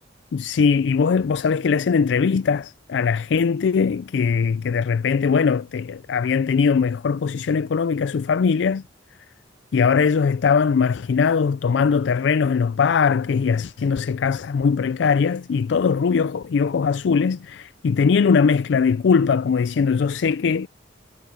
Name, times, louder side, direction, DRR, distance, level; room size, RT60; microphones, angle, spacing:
voice 1, 0.3-8.8 9.7-20.7, left 5 dB, 65° left, 0.4 m, -20 dB
head